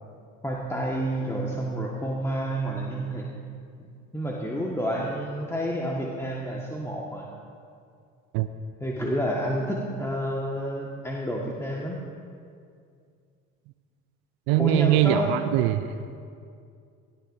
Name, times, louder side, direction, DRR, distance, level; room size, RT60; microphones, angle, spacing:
voice 1, 0.4-3.3 4.1-7.3 8.8-12.0 14.6-15.3, equal, 5° left, -3 dB, 1.8 m, -29 dB
voice 2, 14.5-15.9, right 12 dB, 70° right, 10 dB, 0.7 m, -22 dB
18.5 x 16.5 x 2.8 m, 2.3 s
hypercardioid pair, 55°, 38 cm